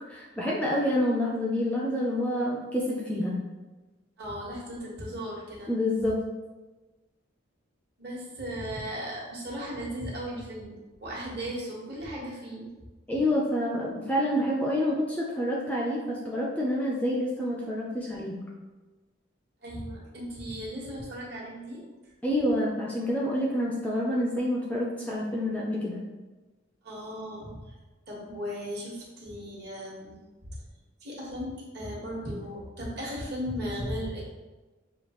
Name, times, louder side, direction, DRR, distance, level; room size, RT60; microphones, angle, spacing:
voice 1, 0.1-3.4 5.7-6.2 13.1-18.4 22.2-26.0, left 1 dB, 5° left, -4 dB, 0.4 m, -28 dB
voice 2, 4.2-5.7 8.0-10.7 11.0-12.7 19.6-21.8 26.8-27.7 28.1-30.2 31.0-34.2, equal, 50° right, -4 dB, 1.3 m, -36 dB
6.5 x 2.4 x 2.9 m, 1.2 s
head